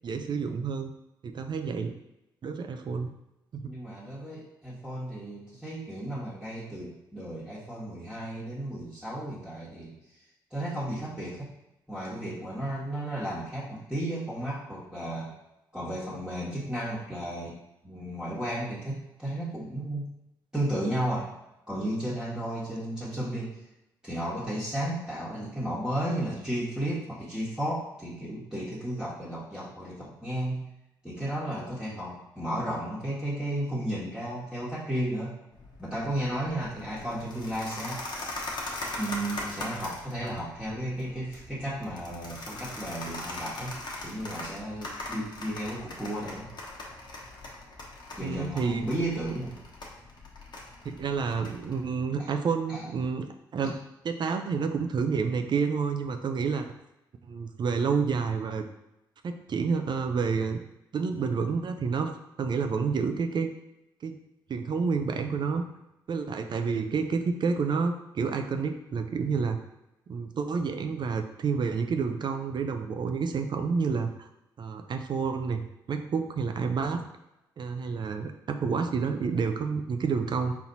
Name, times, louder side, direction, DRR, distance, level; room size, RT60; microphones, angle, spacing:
voice 1, 0.0-0.9 1.2-1.9 2.4-3.1 3.5-3.7 48.2-48.9 50.8-53.3 53.5-53.7 54.0-56.7 57.3-58.6 59.2-60.6 60.9-62.1 62.4-63.5 64.0-64.1 64.5-65.6 66.1-69.6 70.1-74.3 74.6-77.0 77.6-80.6, right 5 dB, 55° right, 6 dB, 0.5 m, -29 dB
voice 2, 3.6-9.9 10.5-11.5 11.9-15.3 15.7-17.6 17.8-20.0 20.5-21.3 21.7-23.5 24.0-30.6 31.0-35.4 35.8-38.0 39.0-46.5 48.2-49.6 52.2-52.3 52.7-52.9, right 1 dB, 5° right, -8 dB, 1.5 m, -33 dB
sound 1, 35.5-51.8, left 2 dB, 50° left, 1.2 m, -41 dB
4.2 x 2.8 x 4.0 m, 0.92 s
supercardioid pair, 50°, 9 cm